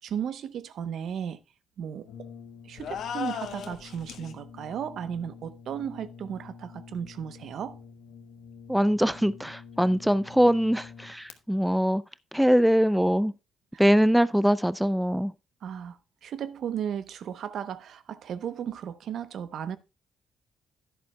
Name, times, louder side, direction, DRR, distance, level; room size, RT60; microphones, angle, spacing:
voice 1, 0.0-1.4 1.8-2.3 2.6-7.8 13.7-13.8 15.6-19.8, right 8 dB, 70° right, 0.8 m, -35 dB
Brass instrument, 2.0-11.4, left 6 dB, 85° left, 1.0 m, -48 dB
sound 1, 2.8-4.3, left 8 dB, 70° left, 1.4 m, -36 dB
voice 2, 8.7-12.0 12.3-13.3 13.8-15.3, equal, ahead, 0.4 m, -22 dB
11.5 x 10.5 x 2.2 m
cardioid pair, 90°, 0 cm